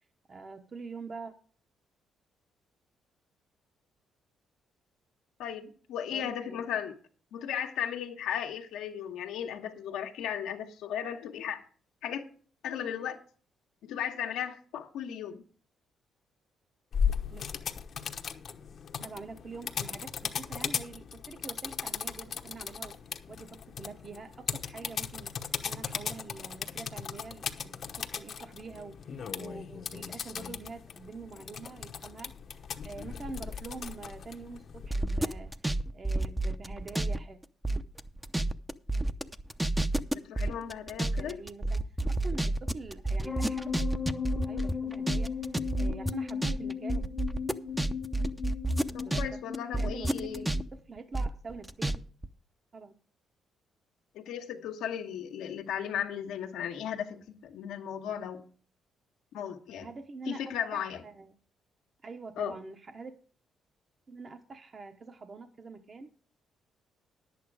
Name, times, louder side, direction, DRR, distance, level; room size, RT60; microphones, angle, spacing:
voice 1, 0.3-1.3 6.1-6.7 17.3-17.4 19.0-22.9 23.3-37.4 41.1-44.0 44.5-47.1 48.9-49.2 49.7-50.5 50.9-52.0 52.7-52.9 59.8-60.4 60.7-61.3 62.0-63.1 64.1-66.1, right 3 dB, 40° right, 6 dB, 1.0 m, -45 dB
voice 2, 5.4-6.9 7.3-11.6 12.0-12.3 12.6-13.2 13.8-15.4 40.2-41.4 48.9-50.4 54.1-58.4 59.3-59.9 60.3-61.0 62.4-62.5, left 9 dB, 90° left, 5 dB, 1.5 m, -36 dB
sound 1, 16.9-34.9, left 7 dB, 55° left, 1.0 m, -37 dB
sound 2, 34.9-37.2 37.4-49.3 49.5-52.0 52.2-52.3, right 2 dB, 5° right, 0.7 m, -30 dB
sound 3, 43.2-50.7, left 7 dB, 10° left, 1.0 m, -37 dB
10.5 x 8.5 x 4.8 m, 0.43 s
cardioid pair, 90°, 0 cm